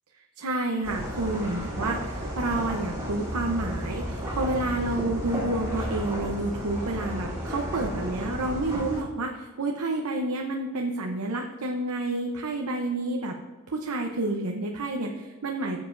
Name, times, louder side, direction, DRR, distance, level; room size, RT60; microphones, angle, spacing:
voice 1, 0.4-13.4 13.7-15.8, right 2 dB, 85° right, 2 dB, 0.8 m, -29 dB
sound 1, 0.8-9.0, equal, 15° right, 3.3 m, -33 dB
14.5 x 7.4 x 2.6 m, 1.3 s
head